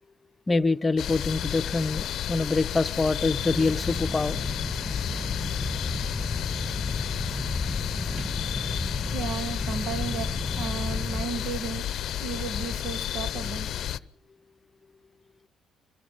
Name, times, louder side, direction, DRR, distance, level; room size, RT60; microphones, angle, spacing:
voice 1, 0.5-4.4, left 3 dB, 30° left, 0.8 m, -25 dB
sound 1, 1.0-14.0, left 11 dB, 60° left, 0.7 m, -32 dB
sound 2, 3.4-11.3, left 1 dB, 5° left, 2.2 m, -33 dB
voice 2, 9.1-11.8 12.2-13.7, right 5 dB, 60° right, 1.8 m, -34 dB
26.0 x 20.5 x 5.3 m
hypercardioid pair, 45°, 0 cm